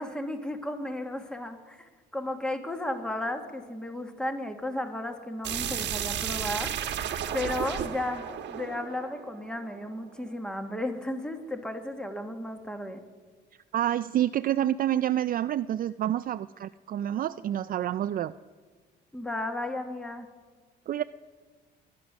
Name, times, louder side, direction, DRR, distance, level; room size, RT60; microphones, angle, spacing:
voice 1, 0.0-6.7 7.3-13.0 19.1-20.3, left 1 dB, 5° left, 5 dB, 1.6 m, -34 dB
sound 1, 5.4-10.2, right 9 dB, 60° right, 1.3 m, -33 dB
voice 2, 13.7-18.3 20.9-21.0, right 11 dB, 45° right, 12 dB, 0.4 m, -28 dB
21.5 x 9.8 x 6.1 m, 1.5 s
cardioid pair, 90°, 20 cm